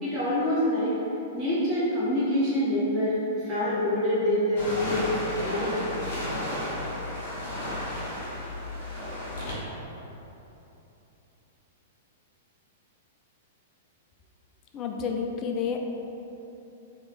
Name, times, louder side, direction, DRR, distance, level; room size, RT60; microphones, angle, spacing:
voice 1, 0.0-1.0 1.3-3.2 3.4-5.9, left 1 dB, 25° right, -11 dB, 1.4 m, -26 dB
sound 1, 4.6-9.5, left 1 dB, 50° left, 1.5 m, -33 dB
voice 2, 14.7-15.8, left 6 dB, 30° left, 2 dB, 0.4 m, -30 dB
3.1 x 3.0 x 4.2 m, 3.0 s
figure-of-eight pair, 100°, 0 cm